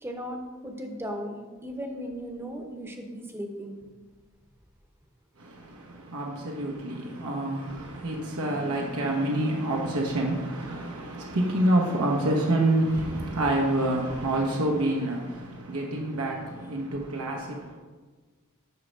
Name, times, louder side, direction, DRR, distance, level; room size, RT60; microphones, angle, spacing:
voice 1, 0.0-3.8, equal, 10° right, 3 dB, 0.8 m, -37 dB
voice 2, 5.4-17.8, right 1 dB, 80° right, -1 dB, 1.0 m, -27 dB
9.4 x 3.3 x 6.2 m, 1.4 s
head